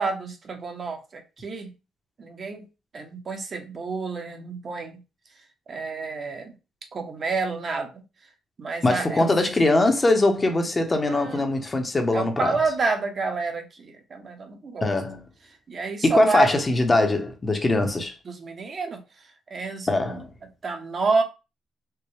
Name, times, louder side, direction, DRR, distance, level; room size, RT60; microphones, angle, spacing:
voice 1, 0.0-1.7 2.2-2.6 2.9-4.9 5.7-6.5 6.9-8.0 8.6-9.3 11.1-11.5 12.1-14.9 15.7-16.5 18.3-19.0 19.5-20.2 20.6-21.2, right 4 dB, 45° right, 0.8 m, -29 dB
voice 2, 8.8-12.5 14.8-15.2 16.0-18.1 19.9-20.3, left 2 dB, 25° left, 0.8 m, -22 dB
4.5 x 2.1 x 3.2 m
cardioid pair, 90°, 0 cm